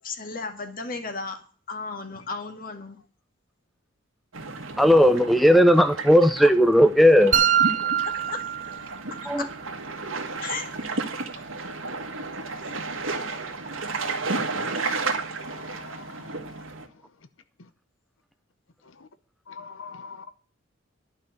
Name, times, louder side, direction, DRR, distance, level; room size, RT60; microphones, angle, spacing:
voice 1, 0.0-1.4 1.7-3.0 8.1-8.5 8.8-9.5 10.4-10.7 12.7-12.8, left 4 dB, 45° left, 1.9 m, -35 dB
sound 1, 4.3-16.9, right 3 dB, 85° right, 1.7 m, -33 dB
voice 2, 4.8-7.3 9.3-9.5, equal, ahead, 0.5 m, -16 dB
sound 2, 7.3-9.3, right 9 dB, 40° right, 0.7 m, -24 dB
voice 3, 15.5-16.1 19.5-20.3, left 5 dB, 75° left, 0.8 m, -42 dB
12.0 x 5.7 x 8.0 m
head